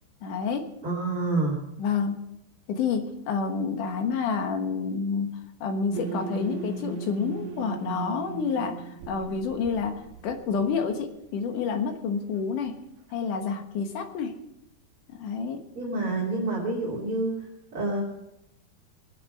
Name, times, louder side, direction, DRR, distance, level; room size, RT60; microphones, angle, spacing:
voice 1, 0.2-0.7 1.8-2.2 2.7-5.3 5.6-12.8 13.1-14.3 15.1-15.6, left 5 dB, 65° left, 5 dB, 2.4 m, -29 dB
voice 2, 0.8-1.6 15.8-17.4 17.7-18.0, right 2 dB, 35° right, -4 dB, 3.5 m, -27 dB
sound 1, 5.9-10.7, right 5 dB, 80° right, 1.8 m, -37 dB
22.5 x 8.3 x 5.5 m, 0.84 s
omnidirectional pair, 4.9 m